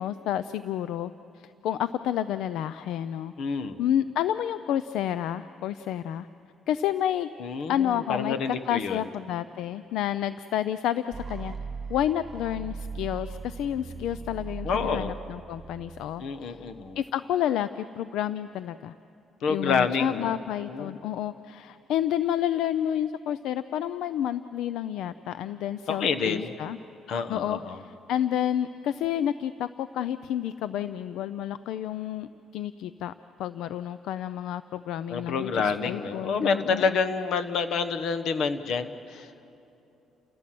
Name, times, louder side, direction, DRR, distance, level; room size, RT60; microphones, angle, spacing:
voice 1, 0.0-3.3 3.8-6.3 6.7-7.3 7.7-8.3 8.7-11.5 11.9-16.6 17.0-18.9 19.5-26.8 27.3-33.1 33.4-37.0, left 11 dB, 85° left, 13 dB, 0.4 m, -30 dB
voice 2, 3.4-3.8 7.4-9.0 14.6-15.1 16.2-17.0 19.4-20.3 20.7-21.0 25.9-26.5 27.1-27.8 35.1-39.4, left 5 dB, 70° left, 10 dB, 1.2 m, -28 dB
sound 1, 11.1-17.0, right 5 dB, 30° right, 1.4 m, -39 dB
29.5 x 16.0 x 7.7 m, 2.7 s
cardioid pair, 125°, 0 cm